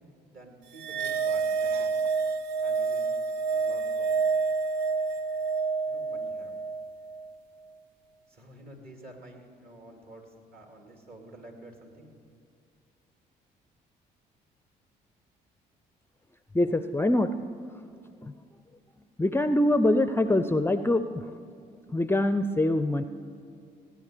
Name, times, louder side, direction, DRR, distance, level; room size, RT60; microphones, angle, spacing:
voice 1, 0.3-2.0 2.6-3.1 3.5-4.1 5.9-6.6 8.3-12.1, right 1 dB, 50° right, 2 dB, 2.7 m, -49 dB
sound 1, 0.7-7.3, right 5 dB, 90° right, 0.5 m, -28 dB
voice 2, 16.5-17.4 17.7-17.8 18.2-18.3 19.2-21.4 21.9-23.0, left 1 dB, 10° left, 11 dB, 0.5 m, -24 dB
17.5 x 9.4 x 5.0 m, 2.4 s
hypercardioid pair, 50°, 21 cm